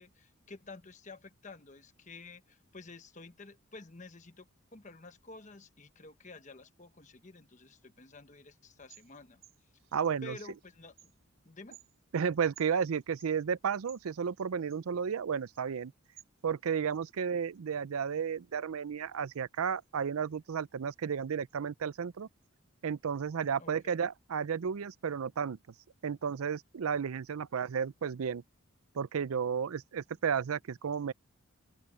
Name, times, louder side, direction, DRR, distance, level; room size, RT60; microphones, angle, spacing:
voice 1, 0.0-9.4 10.2-11.1 11.4-11.8 23.6-23.9, left 3 dB, 35° left, 1.2 m, -51 dB
lion tamarins, 8.7-16.2, right 11 dB, 60° right, 4.0 m, -61 dB
voice 2, 9.9-10.4 12.1-15.9 16.4-22.3 22.8-25.6 26.0-28.4 28.9-31.1, right 7 dB, 80° right, 0.5 m, -33 dB
open air
head